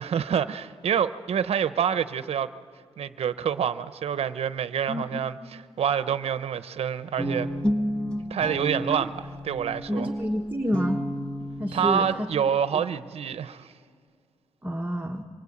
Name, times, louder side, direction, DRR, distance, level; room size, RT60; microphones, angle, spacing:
voice 1, 0.0-2.5 3.0-7.5 8.3-10.1 11.7-13.7, right 8 dB, 65° right, 0.9 m, -27 dB
voice 2, 4.9-5.2 8.9-9.0 10.0-11.0 11.6-12.3 12.7-12.8 14.6-15.2, equal, 15° right, 1.3 m, -29 dB
Guitar, 7.2-12.4, equal, 10° left, 1.2 m, -31 dB
26.0 x 23.5 x 8.7 m
cardioid pair, 105°, 11 cm